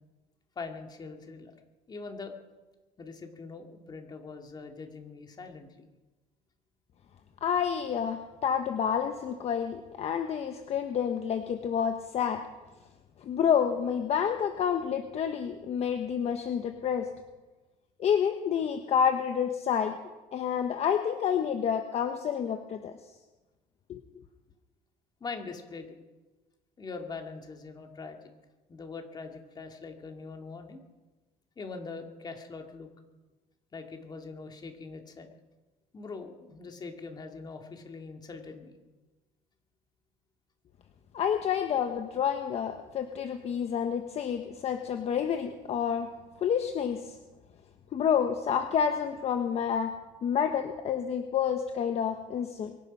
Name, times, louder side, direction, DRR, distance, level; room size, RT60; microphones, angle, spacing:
voice 1, 0.6-1.5 1.9-2.3 3.0-5.9 25.2-26.0 26.8-28.2 28.7-30.8 31.6-32.9 33.7-35.3 35.9-38.7, left 4 dB, 25° left, 4 dB, 2.3 m, -42 dB
voice 2, 7.4-12.4 13.2-17.1 18.0-20.0 20.3-23.0 23.9-24.0 41.1-46.1 46.4-47.2 47.9-49.9 50.2-52.8, left 8 dB, 45° left, 7 dB, 1.1 m, -29 dB
23.5 x 10.5 x 5.5 m, 1.2 s
cardioid pair, 125°, 15 cm